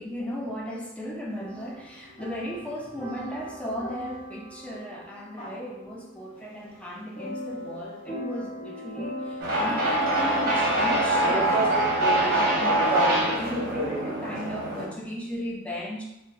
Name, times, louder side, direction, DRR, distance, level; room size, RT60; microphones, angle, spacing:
voice 1, 0.0-16.0, left 1 dB, 5° left, -3 dB, 0.4 m, -36 dB
sound 1, 1.4-14.6, equal, 30° left, 0.7 m, -41 dB
sound 2, 9.4-14.9, right 1 dB, 50° right, 0.7 m, -24 dB
2.7 x 2.3 x 2.3 m, 0.94 s
head